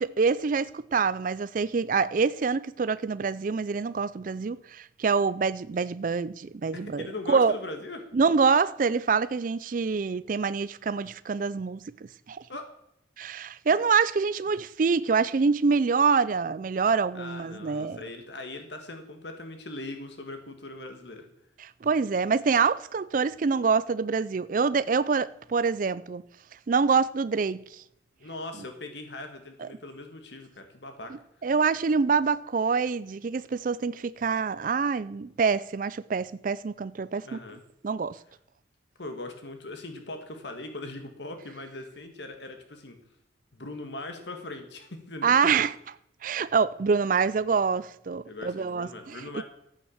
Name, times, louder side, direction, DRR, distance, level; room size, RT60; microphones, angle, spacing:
voice 1, 0.0-7.5 8.1-11.8 12.3-12.4 13.2-18.0 21.6-26.2 26.7-27.6 29.6-29.7 31.4-37.4 37.8-38.2 45.2-45.7 46.2-49.2, right 5 dB, 45° right, 0.4 m, -25 dB
voice 2, 6.7-8.1 12.5-12.7 13.7-13.8 17.1-21.3 28.2-31.2 37.2-37.6 39.0-43.0 43.5-45.3 48.3-49.4, left 2 dB, 70° left, 1.8 m, -40 dB
14.0 x 9.0 x 7.2 m
head